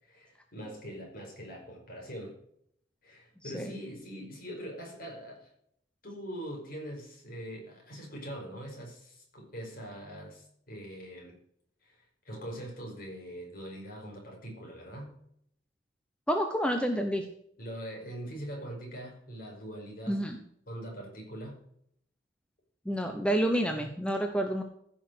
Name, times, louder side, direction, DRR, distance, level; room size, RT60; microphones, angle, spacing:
voice 1, 0.0-2.4 3.0-5.5 6.0-11.4 11.8-15.2 17.6-20.2 20.7-21.6, equal, 50° left, 0 dB, 5.3 m, -42 dB
voice 2, 16.3-17.3 20.1-20.4 22.9-24.6, equal, 5° left, 4 dB, 1.0 m, -29 dB
15.0 x 6.4 x 6.4 m, 0.70 s
head